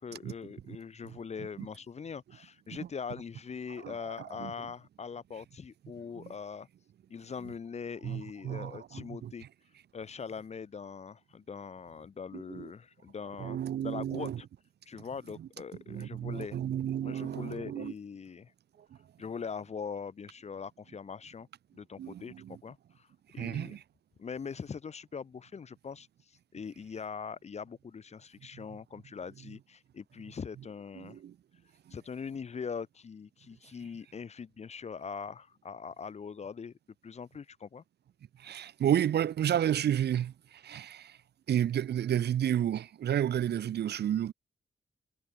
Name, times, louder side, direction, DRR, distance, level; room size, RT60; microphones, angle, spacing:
voice 1, 0.0-6.7 7.1-9.5 9.9-14.5 14.9-16.6 17.0-18.5 19.2-21.5 21.7-23.1 23.3-23.8 24.2-31.2 31.9-36.7 37.0-37.8, left 6 dB, 40° left, 0.4 m, -42 dB
voice 2, 3.7-4.5 6.2-6.3 8.0-9.3 12.3-12.7 13.4-14.4 15.4-15.5 15.9-17.9 22.0-22.6 23.4-23.8 28.5-28.6 31.0-31.3 31.9-32.0 38.4-41.2 41.5-44.3, right 10 dB, 75° right, 0.4 m, -32 dB
wide cardioid pair, 90°, 17 cm